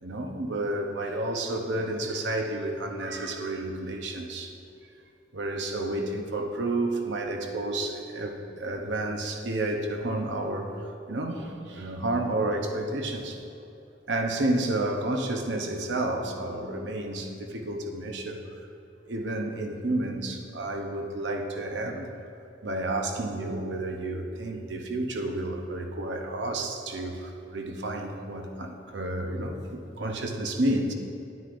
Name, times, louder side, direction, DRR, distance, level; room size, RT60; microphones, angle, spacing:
voice 1, 0.0-4.5 5.3-10.8 11.1-13.4 14.1-18.7 19.1-22.1 22.6-30.9, right 1 dB, 75° right, 3 dB, 0.8 m, -31 dB
10.0 x 9.4 x 2.5 m, 2.7 s
head